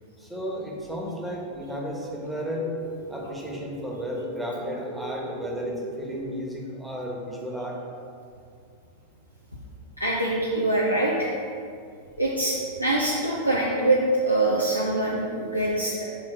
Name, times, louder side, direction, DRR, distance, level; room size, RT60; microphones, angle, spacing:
voice 1, 0.2-2.7 3.1-7.8, equal, ahead, -3 dB, 1.2 m, -33 dB
sound 1, 1.3-6.3, right 2 dB, 50° right, 1.2 m, -39 dB
voice 2, 10.0-11.3 12.2-16.0, right 1 dB, 90° right, -5 dB, 0.7 m, -24 dB
6.6 x 4.0 x 4.4 m, 2.3 s
figure-of-eight pair, 90°, 0 cm